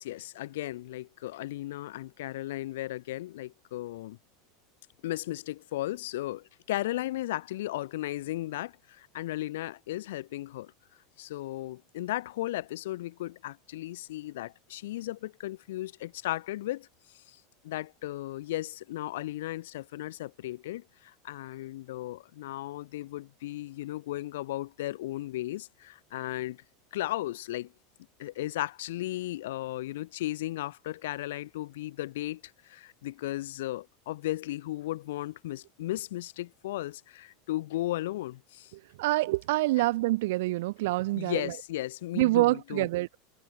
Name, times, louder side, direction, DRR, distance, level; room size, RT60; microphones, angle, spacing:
voice 1, 0.0-4.2 5.0-10.7 11.2-16.9 17.3-17.4 17.6-26.6 26.9-27.7 28.2-38.7 41.1-42.9, left 16 dB, 80° left, 0.9 m, -35 dB
voice 2, 39.0-41.5 42.1-43.2, right 19 dB, 65° right, 0.7 m, -26 dB
supercardioid pair, 175°, 0 cm